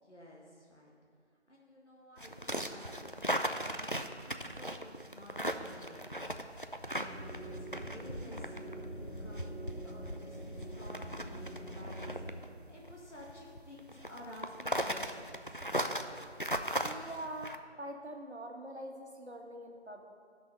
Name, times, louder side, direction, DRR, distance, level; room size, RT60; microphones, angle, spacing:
voice 1, 0.0-0.9 1.5-15.7, left 1 dB, 75° left, -3 dB, 1.8 m, -54 dB
sound 1, 2.2-17.6, equal, 50° left, 0.4 m, -38 dB
sound 2, 7.0-12.3, right 1 dB, 30° left, 3.0 m, -44 dB
voice 2, 16.8-20.0, right 1 dB, 70° right, 2 dB, 1.4 m, -44 dB
12.0 x 6.1 x 5.2 m, 2.1 s
figure-of-eight pair, 180°, 35 cm